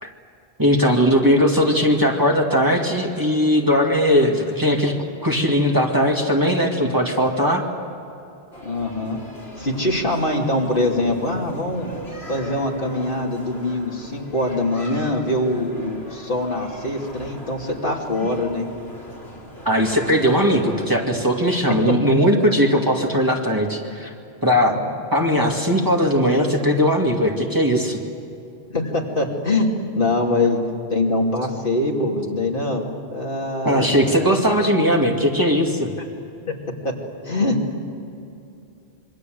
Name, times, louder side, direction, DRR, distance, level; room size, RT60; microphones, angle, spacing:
voice 1, 0.6-4.9 5.2-7.6 19.7-24.1 24.4-24.8 25.1-28.0 33.6-35.9, equal, 20° right, 0 dB, 2.4 m, -19 dB
sound 1, 8.5-20.8, equal, 80° left, 4.4 m, -39 dB
voice 2, 8.6-9.2 9.6-11.9 12.3-18.7 21.9-22.0 24.7-24.8 28.7-30.6 30.9-34.3 36.5-36.6 36.8-36.9 37.2-37.6, left 2 dB, 55° left, 0 dB, 3.1 m, -23 dB
26.5 x 24.0 x 7.9 m, 2.7 s
omnidirectional pair, 1.1 m